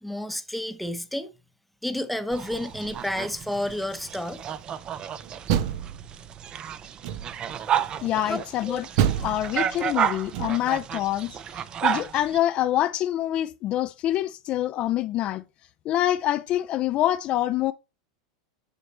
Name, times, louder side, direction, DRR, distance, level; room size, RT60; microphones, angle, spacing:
voice 1, 0.0-1.3 1.8-4.4 8.3-8.4 8.7-8.8 9.2-9.3, left 1 dB, ahead, 0.9 m, -30 dB
sound 1, 2.3-12.4, right 9 dB, 30° right, 0.6 m, -32 dB
Door, 5.2-6.5 7.0-7.6 9.0-10.9, right 10 dB, 60° right, 0.8 m, -28 dB
voice 2, 8.0-8.8 9.2-15.4 15.9-17.7, left 13 dB, 40° left, 0.4 m, -26 dB
7.1 x 6.4 x 3.3 m
supercardioid pair, 120°, 3 cm